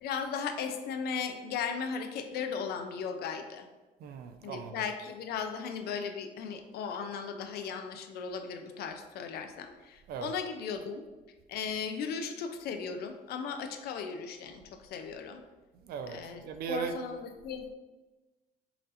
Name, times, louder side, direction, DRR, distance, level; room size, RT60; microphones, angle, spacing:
voice 1, 0.0-3.7 4.4-11.0 11.5-15.4 16.1-17.7, left 6 dB, 70° left, 7 dB, 0.5 m, -37 dB
voice 2, 4.0-4.7 10.1-10.3 15.9-16.2 16.4-16.9, right 6 dB, 65° right, 8 dB, 0.5 m, -37 dB
5.8 x 2.7 x 2.6 m, 1.2 s
cardioid pair, 110°, 17 cm